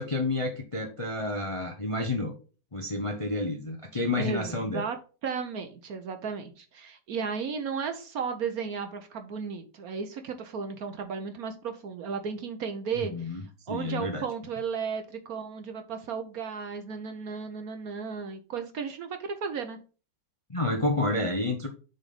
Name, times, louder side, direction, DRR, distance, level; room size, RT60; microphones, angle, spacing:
voice 1, 0.0-2.3 2.7-4.8 13.1-13.4 13.7-14.2 20.5-21.7, left 2 dB, 30° left, 4 dB, 0.6 m, -29 dB
voice 2, 4.2-5.0 5.2-13.4 13.7-19.8, right 6 dB, 60° right, 7 dB, 1.2 m, -34 dB
7.0 x 4.2 x 5.2 m, 0.36 s
omnidirectional pair, 2.0 m